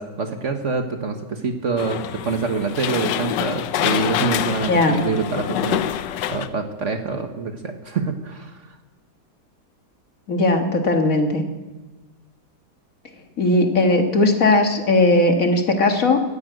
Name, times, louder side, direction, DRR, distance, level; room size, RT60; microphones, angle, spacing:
voice 1, 0.0-5.9 6.3-8.5, right 4 dB, 50° right, 6 dB, 1.3 m, -25 dB
sound 1, 1.8-6.5, left 11 dB, 90° left, 1.3 m, -26 dB
voice 2, 4.7-5.0 10.3-11.4 13.4-16.2, left 2 dB, 50° left, 4 dB, 2.0 m, -18 dB
15.5 x 9.7 x 9.1 m, 1.1 s
omnidirectional pair, 1.8 m